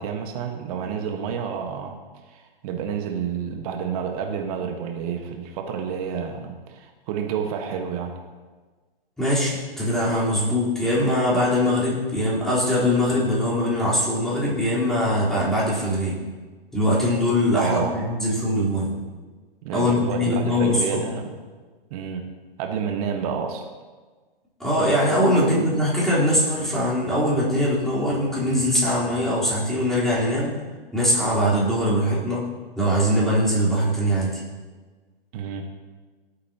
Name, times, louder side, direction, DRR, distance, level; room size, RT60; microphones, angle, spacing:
voice 1, 0.0-2.0 2.3-8.2 17.5-18.0 19.6-21.3 21.9-22.3 22.6-23.7 35.3-35.7, right 7 dB, 40° right, 4 dB, 1.4 m, -29 dB
voice 2, 9.2-16.2 16.7-18.9 19.7-21.0 24.6-30.6 30.9-32.5 32.8-34.4, equal, ahead, -9 dB, 3.8 m, -22 dB
16.5 x 8.4 x 2.9 m, 1.4 s
hypercardioid pair, 125°, 29 cm